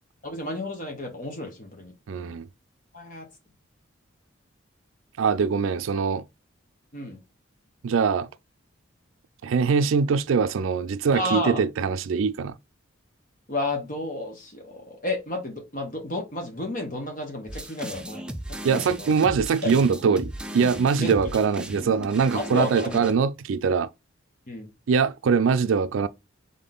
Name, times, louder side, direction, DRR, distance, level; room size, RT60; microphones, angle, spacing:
voice 1, 0.2-2.4 2.9-3.3 6.9-7.2 11.1-11.6 13.5-18.2 18.7-19.1 19.6-19.7 21.0-21.1 22.3-23.0 24.5-24.7, left 1 dB, 40° left, 1.4 m, -32 dB
voice 2, 2.1-2.5 5.2-6.2 7.8-8.3 9.4-12.5 18.6-23.9 24.9-26.1, right 5 dB, 80° right, 0.4 m, -23 dB
sound 1, 17.5-23.1, equal, 5° right, 0.4 m, -37 dB
3.7 x 3.7 x 3.8 m
head